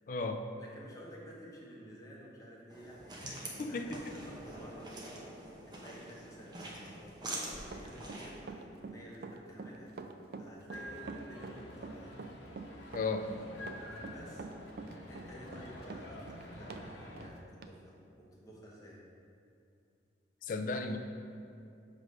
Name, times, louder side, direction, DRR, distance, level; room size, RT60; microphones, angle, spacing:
voice 1, 0.1-0.5 3.2-4.2 12.9-13.3 20.5-21.0, left 3 dB, 45° left, 6 dB, 0.3 m, -35 dB
voice 2, 0.6-7.1 7.4-10.1 10.4-12.1 14.0-14.4 15.1-19.0, equal, 20° left, -5 dB, 1.0 m, -52 dB
sound 1, 2.7-8.4, right 1 dB, 20° right, 0.7 m, -45 dB
Run, 7.6-16.9 17.2-17.3 17.6-17.7, right 4 dB, 55° right, 0.3 m, -45 dB
sound 2, 10.7-17.3, equal, 85° left, 0.9 m, -48 dB
6.3 x 3.2 x 5.2 m, 2.6 s
head